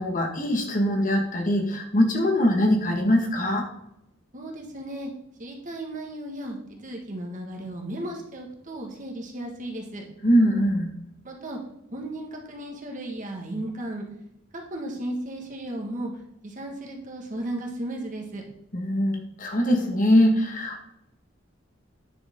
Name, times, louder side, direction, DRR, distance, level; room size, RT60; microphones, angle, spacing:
voice 1, 0.0-3.7 10.2-10.9 18.7-20.9, equal, 40° left, 2 dB, 1.6 m, -22 dB
voice 2, 4.3-5.1 5.4-10.0 11.2-11.6 11.9-14.0 14.7-16.1 16.4-18.4, right 1 dB, 40° right, 1 dB, 1.7 m, -35 dB
10.0 x 6.3 x 3.7 m, 0.80 s
head